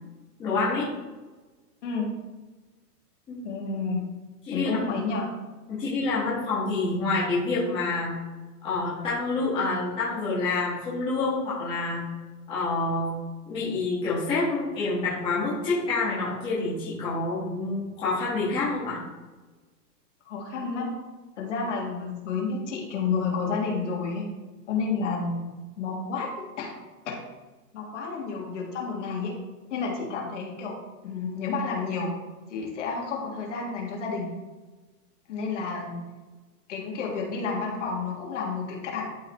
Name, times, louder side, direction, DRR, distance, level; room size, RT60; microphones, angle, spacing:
voice 1, 0.4-0.9 3.3-3.4 4.4-4.7 5.8-8.1 8.6-12.0 12.5-13.1 13.4-19.0, left 3 dB, 10° left, -10 dB, 1.5 m, -27 dB
voice 2, 3.4-4.0 4.5-5.3 20.3-20.9 21.4-24.3 24.7-25.4 25.8-26.3 26.6-26.7 27.1-27.2 27.7-29.3 29.7-30.8 31.0-32.1 32.5-34.3 35.3-36.0 36.7-39.1, left 4 dB, 45° left, -2 dB, 1.8 m, -30 dB
12.0 x 4.0 x 3.1 m, 1.2 s
hypercardioid pair, 170°, 49 cm